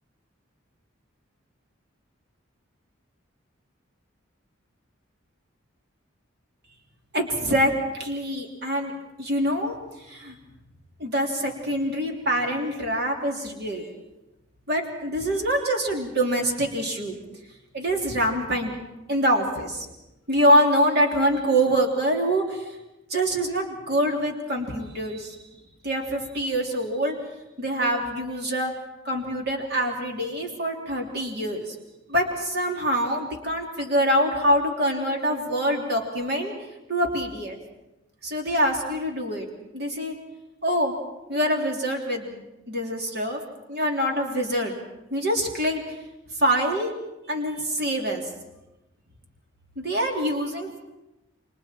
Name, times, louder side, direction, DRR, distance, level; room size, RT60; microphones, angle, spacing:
voice 1, 7.1-8.9 9.2-9.8 10.0-10.4 11.0-13.9 14.7-17.2 17.7-18.7 19.1-19.9 20.3-22.7 23.1-25.4 25.8-27.1 27.6-28.7 29.0-31.7 32.1-36.5 36.9-37.6 38.2-39.4 39.7-40.1 40.6-40.9 41.3-42.4 42.7-43.4 43.7-44.7 45.1-45.8 46.4-46.9 47.3-48.2 49.8-50.8, equal, 50° right, 1 dB, 3.2 m, -25 dB
30.0 x 24.5 x 4.5 m, 0.97 s
head